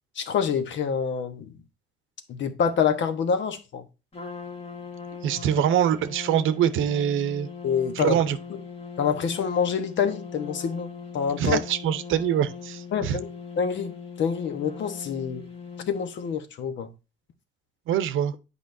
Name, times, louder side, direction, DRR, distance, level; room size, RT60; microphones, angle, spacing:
voice 1, 0.2-1.5 2.3-3.8 7.6-8.2 9.0-11.6 12.9-13.3 13.6-13.9 14.2-15.4 15.9-16.9, left 7 dB, 70° left, 1.1 m, -26 dB
Trumpet, 4.1-16.3, left 5 dB, 30° left, 1.8 m, -40 dB
voice 2, 5.2-7.5 8.0-8.4 11.4-13.2 17.9-18.3, right 10 dB, 80° right, 0.7 m, -24 dB
8.7 x 5.0 x 2.6 m
cardioid pair, 90°, 20 cm